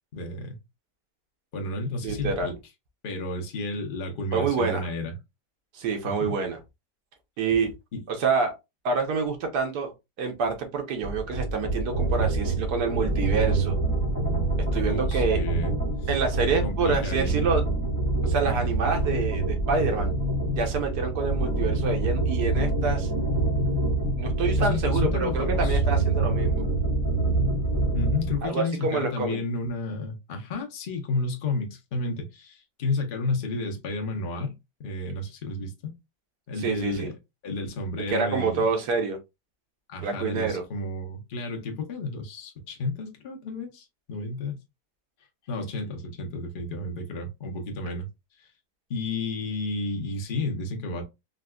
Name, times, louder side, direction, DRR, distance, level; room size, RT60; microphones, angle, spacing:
voice 1, 0.1-0.6 1.5-2.5 3.0-5.1 6.0-6.3 7.9-8.0 14.9-15.7 16.6-17.4 24.6-25.8 27.9-34.5 34.8-35.9 36.5-37.2 37.4-38.6 39.9-44.6 45.5-48.1 48.4-48.5 48.9-51.0, left 2 dB, 45° left, 0.7 m, -31 dB
voice 2, 2.0-2.5 4.3-4.9 5.7-6.6 7.4-7.7 8.1-8.5 8.8-9.9 10.2-13.8 14.7-15.4 16.1-17.6 18.2-20.1 20.5-23.1 24.2-26.7 28.4-29.4 36.6-37.1 38.1-39.2 40.0-40.6, right 5 dB, 70° right, 1.4 m, -27 dB
sound 1, 11.0-28.4, right 2 dB, 15° right, 0.9 m, -26 dB
3.9 x 2.5 x 2.2 m
omnidirectional pair, 1.8 m